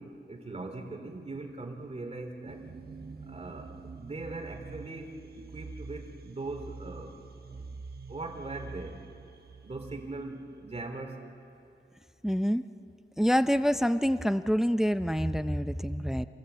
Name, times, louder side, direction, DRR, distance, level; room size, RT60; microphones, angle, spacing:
voice 1, 0.0-2.7 3.2-7.2 8.1-9.0 9.6-11.3, right 2 dB, 30° right, 4 dB, 2.7 m, -40 dB
sound 1, 2.5-11.0, right 4 dB, 50° right, 1.3 m, -46 dB
voice 2, 12.2-12.7 13.2-16.3, equal, ahead, 12 dB, 0.5 m, -26 dB
27.0 x 17.0 x 8.1 m, 2.7 s
wide cardioid pair, 100°, 20 cm